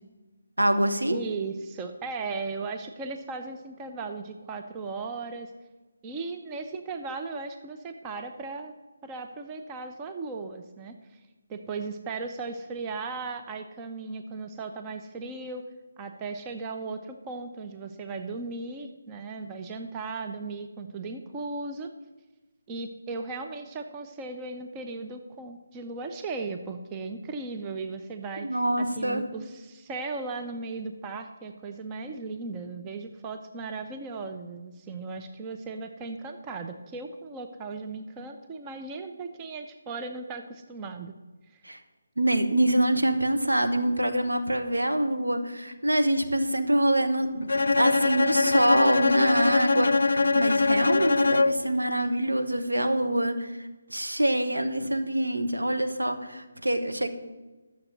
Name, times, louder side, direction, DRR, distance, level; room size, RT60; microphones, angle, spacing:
voice 1, 0.6-1.2 28.4-29.3 41.6-41.8 42.2-53.5 53.9-57.1, right 1 dB, 80° right, 6 dB, 1.5 m, -25 dB
voice 2, 1.1-5.5 6.0-8.7 9.0-11.2 11.5-15.7 16.0-21.9 22.7-41.2 41.5-41.6, right 3 dB, 15° right, 5 dB, 0.7 m, -37 dB
Bowed string instrument, 47.5-51.7, left 3 dB, 60° left, 0.5 m, -23 dB
11.5 x 7.0 x 7.5 m, 1.2 s
figure-of-eight pair, 150°, 0 cm